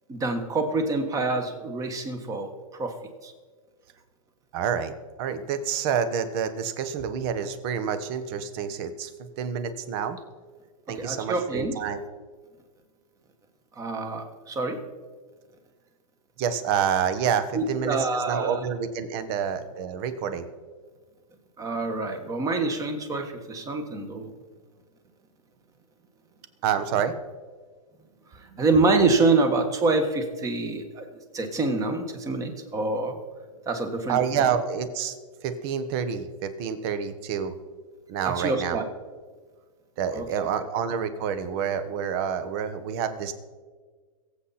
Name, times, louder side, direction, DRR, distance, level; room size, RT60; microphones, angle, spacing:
voice 1, 0.1-2.5 2.8-2.9 3.2-3.3 10.9-11.8 13.8-14.8 17.5-18.6 21.6-24.3 28.3-31.0 31.3-33.2 33.7-34.5 38.2-38.8 40.1-40.5, right 3 dB, 15° right, 7 dB, 1.6 m, -26 dB
voice 2, 4.5-4.9 5.2-10.2 10.9-12.0 16.4-20.5 26.6-27.1 34.1-35.2 35.4-37.5 38.1-38.8 40.0-43.3, right 7 dB, 40° right, 11 dB, 1.3 m, -28 dB
22.5 x 8.1 x 4.3 m, 1.5 s
hypercardioid pair, 145°, 19 cm